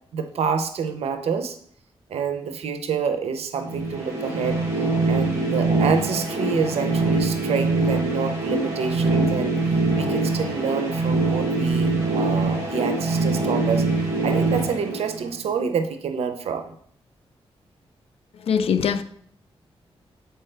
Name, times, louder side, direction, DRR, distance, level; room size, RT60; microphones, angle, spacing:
voice 1, 0.1-1.6 2.1-4.6 5.1-16.7, right 6 dB, 80° right, 0.6 m, -27 dB
sound 1, 3.6-15.5, right 3 dB, 30° right, 2.3 m, -23 dB
voice 2, 18.5-19.0, left 7 dB, 70° left, 0.5 m, -21 dB
7.5 x 4.5 x 3.3 m
wide cardioid pair, 130°, 10 cm